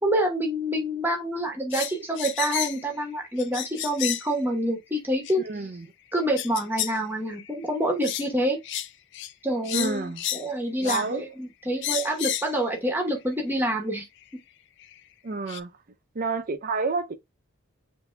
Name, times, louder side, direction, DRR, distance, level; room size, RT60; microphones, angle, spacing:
voice 1, 0.0-5.4 6.1-8.6 9.4-14.1, right 1 dB, 10° right, 0.9 m, -27 dB
sound 1, 1.7-2.9 3.4-4.3 5.3-5.4 6.4-7.0 7.3-7.5 8.0-8.3 8.6-8.9 9.1-9.3 9.6-10.5 10.8-11.1 11.8-12.5 13.5-13.6 14.8-14.9 15.5-15.6, left 12 dB, 55° left, 0.4 m, -31 dB
voice 2, 5.4-5.9 9.7-10.2 10.8-11.2 15.2-15.7 16.1-17.1, right 4 dB, 40° right, 0.5 m, -29 dB
8.0 x 2.7 x 2.2 m
head